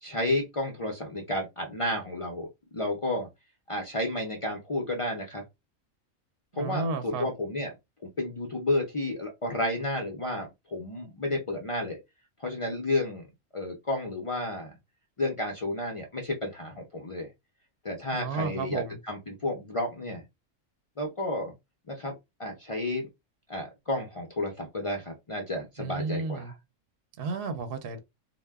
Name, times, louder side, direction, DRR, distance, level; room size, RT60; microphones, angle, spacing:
voice 1, 0.0-3.3 3.7-5.4 6.5-7.7 8.0-12.0 12.4-13.3 13.5-14.7 15.2-17.3 17.8-20.2 21.0-21.5 21.9-22.1 22.4-23.1 23.5-26.5, left 1 dB, 60° left, 0.3 m, -31 dB
voice 2, 6.5-7.3 18.1-19.0 25.8-26.5 27.2-28.0, right 4 dB, 60° right, 0.7 m, -32 dB
2.1 x 2.1 x 3.4 m
omnidirectional pair, 1.4 m